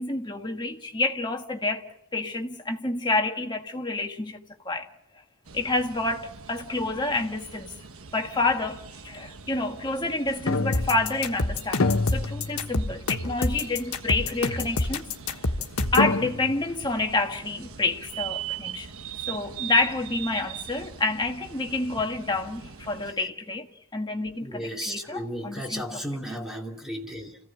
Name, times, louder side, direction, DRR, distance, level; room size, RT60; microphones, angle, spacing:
voice 1, 0.0-1.8 2.1-4.4 4.6-4.9 5.5-7.8 8.1-15.0 15.3-15.4 15.9-18.9 19.3-23.7 23.9-26.0, left 2 dB, 20° left, 1.5 m, -28 dB
sound 1, 5.5-23.1, right 8 dB, 75° right, 1.3 m, -42 dB
sound 2, 10.5-11.4 11.8-13.0 13.3-13.4 14.4-14.5 15.6-15.7 16.0-16.7, left 3 dB, 70° left, 0.8 m, -27 dB
sound 3, 10.7-16.1, left 2 dB, 90° left, 1.4 m, -27 dB
voice 2, 24.4-27.4, equal, ahead, 2.7 m, -34 dB
28.5 x 16.0 x 8.8 m
head